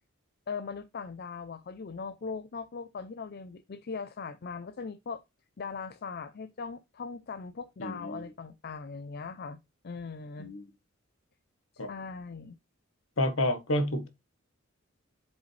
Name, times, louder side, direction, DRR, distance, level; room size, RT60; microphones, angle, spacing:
voice 1, 0.5-5.2 5.6-9.6 9.8-10.5 11.7-12.6, left 5 dB, 50° left, 0.5 m, -40 dB
voice 2, 7.8-8.2 10.4-10.6 11.8-11.9 13.2-14.1, left 1 dB, 70° left, 1.4 m, -29 dB
7.8 x 5.4 x 3.2 m
head